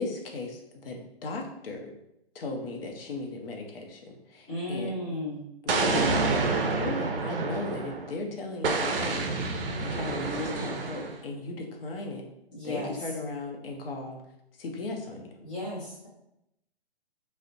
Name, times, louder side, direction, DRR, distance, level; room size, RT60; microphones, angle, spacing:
voice 1, 0.0-1.9 2.3-5.0 5.6-9.5 9.8-12.2 12.6-14.2 14.6-15.3, left 3 dB, 65° left, 2 dB, 0.6 m, -36 dB
voice 2, 4.5-5.5 12.5-12.9 15.4-16.1, left 1 dB, 10° left, -11 dB, 0.3 m, -34 dB
Explosion, 5.7-8.1 8.6-11.2, right 3 dB, 65° right, 0.5 m, -28 dB
2.5 x 2.0 x 2.5 m, 0.82 s
hypercardioid pair, 135°, 31 cm